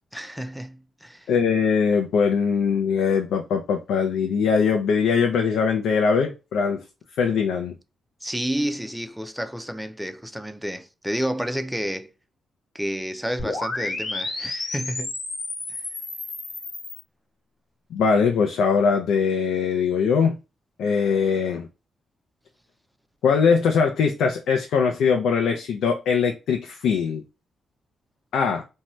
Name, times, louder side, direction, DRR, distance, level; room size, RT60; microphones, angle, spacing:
voice 1, 0.1-1.3 8.2-12.1 12.7-15.1 15.7-15.8, equal, ahead, 0.4 m, -30 dB
voice 2, 1.3-6.8 7.2-7.7 17.9-20.4 20.8-21.7 23.2-27.2 28.3-28.6, left 6 dB, 90° left, 0.4 m, -21 dB
sound 1, 13.4-17.0, left 2 dB, 50° left, 1.0 m, -31 dB
2.6 x 2.2 x 2.9 m
cardioid pair, 90°, 0 cm